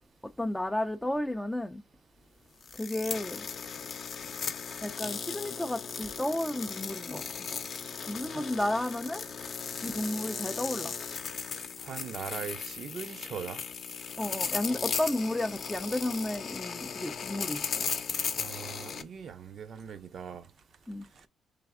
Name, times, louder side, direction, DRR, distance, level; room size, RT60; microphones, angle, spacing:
voice 1, 0.4-1.8 2.8-3.5 4.8-7.2 8.1-9.3 9.8-10.9 14.2-17.8 20.9-21.0, left 1 dB, 5° left, 0.3 m, -32 dB
sound 1, 2.6-19.0, left 6 dB, 55° left, 0.6 m, -37 dB
voice 2, 11.5-13.6 18.4-20.4, right 7 dB, 55° right, 0.5 m, -41 dB
3.4 x 3.4 x 3.4 m
cardioid pair, 90°, 0 cm